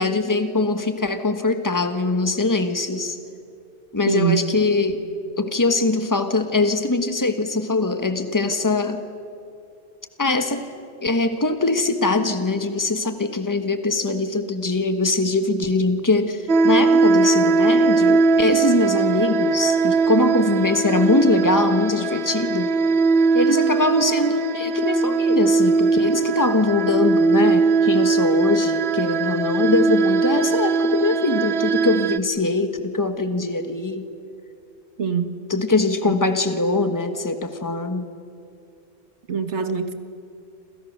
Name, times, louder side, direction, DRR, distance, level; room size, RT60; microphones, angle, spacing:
voice 1, 0.0-3.2 3.9-5.0 5.4-9.0 10.2-10.7 11.0-22.7 23.3-34.1 35.5-38.1, left 3 dB, 15° left, 8 dB, 1.5 m, -22 dB
voice 2, 4.1-4.4 35.0-35.3 36.0-36.2 39.3-39.9, right 7 dB, 85° right, 8 dB, 1.8 m, -23 dB
sound 1, 16.5-32.2, right 4 dB, 65° right, 1.1 m, -20 dB
28.0 x 27.5 x 6.7 m, 2.4 s
omnidirectional pair, 1.1 m